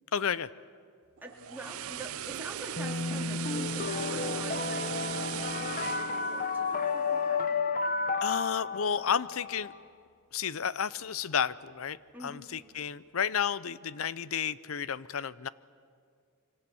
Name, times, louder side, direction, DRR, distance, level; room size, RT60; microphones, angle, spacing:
voice 1, 0.1-0.5 8.2-9.7 10.3-15.5, left 7 dB, 65° left, 17 dB, 0.6 m, -32 dB
voice 2, 1.2-7.5 12.1-12.4, right 1 dB, 10° right, -1 dB, 2.7 m, -46 dB
sound 1, 1.2-7.4 7.7-7.9, right 11 dB, 70° right, 0.5 m, -39 dB
sound 2, 2.8-9.8, left 4 dB, 40° left, 1.0 m, -32 dB
26.0 x 25.5 x 7.1 m, 2.2 s
head